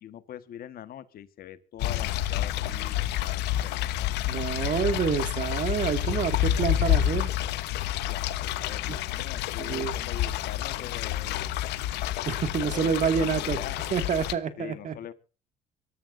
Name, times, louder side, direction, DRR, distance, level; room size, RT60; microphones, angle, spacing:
voice 1, 0.0-4.1 4.6-4.8 7.9-11.5 12.6-13.8 14.6-15.1, left 10 dB, 60° left, 12 dB, 1.6 m, -43 dB
sound 1, 1.8-14.3, left 13 dB, 85° left, 1.2 m, -29 dB
voice 2, 4.3-7.3 8.9-9.0 9.6-9.9 12.3-13.6 13.9-15.0, right 7 dB, 50° right, 10 dB, 2.3 m, -28 dB
25.0 x 13.5 x 2.7 m, 0.37 s
cardioid pair, 110°, 17 cm